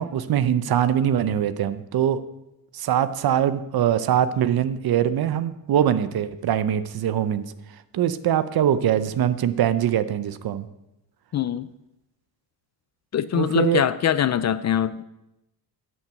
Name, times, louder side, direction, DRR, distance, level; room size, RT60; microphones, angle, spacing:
voice 1, 0.0-2.2 2.7-7.4 7.9-10.7 13.3-13.8, right 10 dB, 55° right, 13 dB, 0.8 m, -22 dB
voice 2, 11.3-11.7 13.1-15.0, left 10 dB, 40° left, 15 dB, 0.4 m, -23 dB
11.0 x 6.0 x 7.7 m, 0.91 s
cardioid pair, 135°, 43 cm